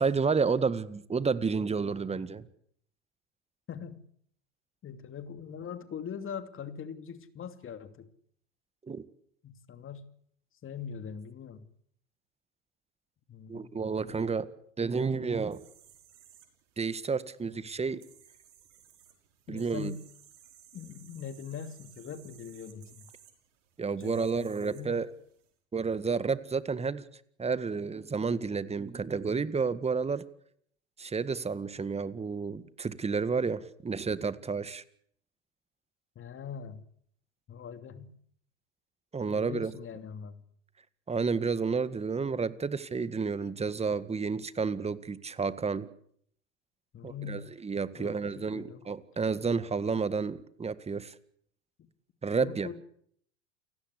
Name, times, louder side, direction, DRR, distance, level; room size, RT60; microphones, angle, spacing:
voice 1, 0.0-2.5 8.9-9.0 13.5-14.5 14.8-15.6 16.8-18.0 19.5-19.9 23.8-25.1 25.7-27.0 27.4-30.2 31.0-34.8 39.1-39.7 41.1-45.9 47.0-51.1 52.2-52.7, right 5 dB, 15° right, 15 dB, 1.7 m, -31 dB
voice 2, 3.7-4.0 4.8-8.1 9.4-10.0 10.6-11.7 13.3-14.1 17.5-17.6 19.5-20.0 20.7-23.1 24.0-25.0 36.1-36.8 37.5-38.1 39.3-40.5 46.9-47.5 48.0-48.9 52.4-52.8, left 7 dB, 35° left, 10 dB, 2.8 m, -42 dB
sound 1, 15.5-25.5, right 9 dB, 80° right, 6.1 m, -59 dB
29.0 x 17.5 x 8.4 m, 0.67 s
hypercardioid pair, 85°, 36 cm